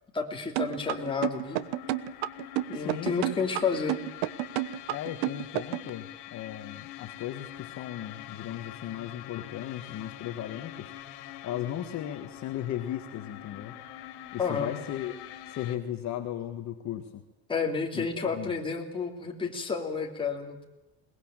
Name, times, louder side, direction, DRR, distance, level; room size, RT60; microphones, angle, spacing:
voice 1, 0.1-1.6 2.7-4.0 14.4-14.7 17.5-20.6, left 5 dB, 10° left, 1 dB, 2.9 m, -30 dB
sound 1, 0.6-5.9, right 17 dB, 85° right, 1.3 m, -30 dB
sound 2, 0.7-15.8, left 13 dB, 65° left, 3.1 m, -45 dB
voice 2, 2.7-3.2 4.9-10.9 11.4-13.8 14.3-15.2 15.5-17.2 17.9-18.5, left 11 dB, 40° left, 6 dB, 1.6 m, -36 dB
22.0 x 20.0 x 9.0 m, 1.0 s
cardioid pair, 170°, 42 cm